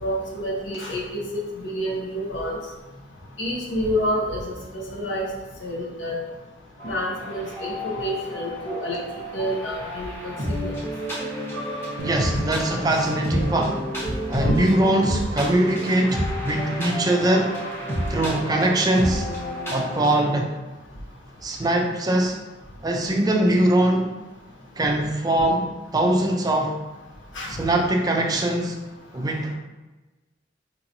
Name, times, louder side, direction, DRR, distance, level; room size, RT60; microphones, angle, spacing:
voice 1, 0.0-1.2 1.6-2.6 3.4-5.2 5.6-6.2 6.8-9.0 9.3-10.3 10.6-10.7 14.0-14.6 27.3-27.5, equal, 75° left, -3 dB, 0.8 m, -28 dB
sound 1, 6.8-20.2, equal, 10° left, 0.8 m, -31 dB
voice 2, 12.0-13.8 14.3-17.6 18.1-19.3 19.7-20.5 21.4-22.4 22.8-24.1 24.8-26.7 27.5-28.8 29.1-29.5, right 1 dB, 20° right, 2 dB, 0.4 m, -22 dB
sound 2, 12.0-15.4, right 1 dB, 75° right, 0.5 m, -38 dB
4.5 x 2.9 x 2.6 m, 1.2 s
head